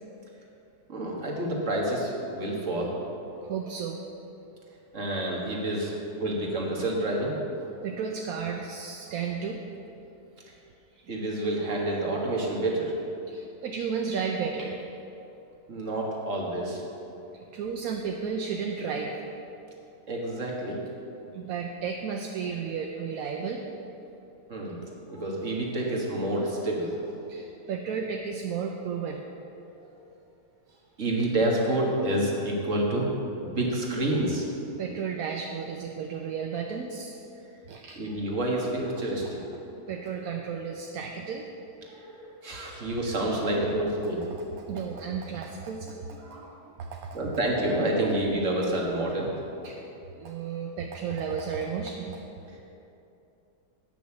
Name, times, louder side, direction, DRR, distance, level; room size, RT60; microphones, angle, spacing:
voice 1, 0.9-2.9 4.9-5.9 6.2-7.4 11.1-12.9 15.7-16.8 20.1-20.8 24.5-26.9 31.0-33.1 33.4-34.4 38.0-39.5 41.8-44.3 46.2-46.6 47.1-49.3 52.5-52.6, right 1 dB, 50° right, -2 dB, 1.8 m, -28 dB
voice 2, 3.4-4.0 7.8-9.6 10.9-11.1 13.3-14.8 17.5-19.2 21.3-23.6 27.3-29.2 34.8-37.2 37.7-38.0 39.1-39.2 39.9-41.5 41.7-41.8 42.7-42.8 44.7-47.2 49.6-49.8 50.2-52.2, right 6 dB, 70° right, 2 dB, 1.0 m, -33 dB
9.5 x 6.2 x 7.0 m, 2.9 s
omnidirectional pair, 1.7 m